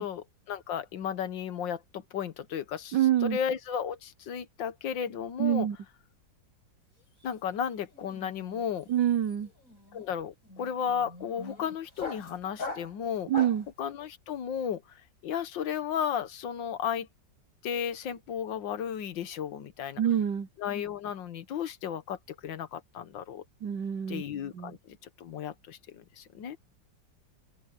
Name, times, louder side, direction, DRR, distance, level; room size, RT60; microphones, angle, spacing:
voice 1, 0.0-5.7 7.2-8.9 9.9-13.3 13.8-17.1 17.6-20.0 20.6-23.4 24.1-26.6, left 8 dB, 85° left, 1.8 m, -34 dB
voice 2, 2.9-3.4 5.4-5.8 8.9-9.5 13.3-13.7 20.0-20.5 23.6-24.2 24.5-24.8, right 10 dB, 70° right, 1.6 m, -26 dB
sound 1, 6.9-7.2 7.5-13.7, left 3 dB, 45° left, 7.4 m, -42 dB
open air
omnidirectional pair, 2.0 m